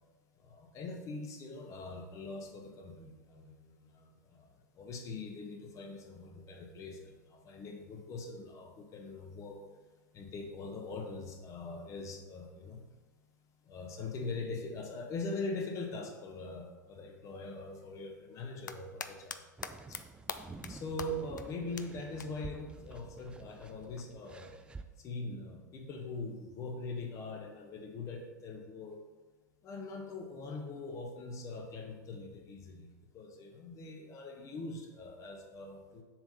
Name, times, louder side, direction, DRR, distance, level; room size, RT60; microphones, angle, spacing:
voice 1, 0.4-9.6 10.1-12.8 13.6-19.4 19.9-20.0 20.7-24.5 25.0-29.0 29.6-36.0, left 3 dB, 30° left, 3 dB, 1.2 m, -42 dB
sound 1, 18.4-19.4 19.6-20.0 20.3-20.7 21.0-21.1 21.4-21.5 21.8-21.9 22.2-22.3 23.8-23.9, left 6 dB, 80° left, 0.4 m, -40 dB
sound 2, 19.6-24.8, right 3 dB, 10° right, 0.4 m, -50 dB
7.1 x 3.7 x 5.6 m, 1.2 s
figure-of-eight pair, 90°, 10 cm